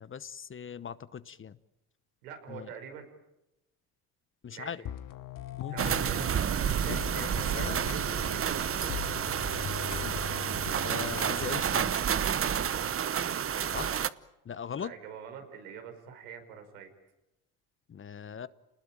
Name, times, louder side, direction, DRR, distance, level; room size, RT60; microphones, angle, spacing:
voice 1, 0.0-1.6 2.5-2.7 4.4-4.8 5.6-6.1 6.8-7.3 7.5-7.8 10.0-10.2 10.8-12.0 13.7-13.9 14.4-14.9 17.9-18.5, left 7 dB, 30° left, 16 dB, 1.0 m, -39 dB
voice 2, 2.2-3.1 4.5-4.7 5.7-8.4 13.4-14.0 14.8-16.9, right 7 dB, 85° right, 5 dB, 5.5 m, -45 dB
sound 1, 4.9-13.0, left 11 dB, 50° left, 1.7 m, -41 dB
sound 2, 5.8-14.1, right 8 dB, 30° right, 1.0 m, -30 dB
29.0 x 20.5 x 8.9 m, 0.92 s
hypercardioid pair, 80°, 42 cm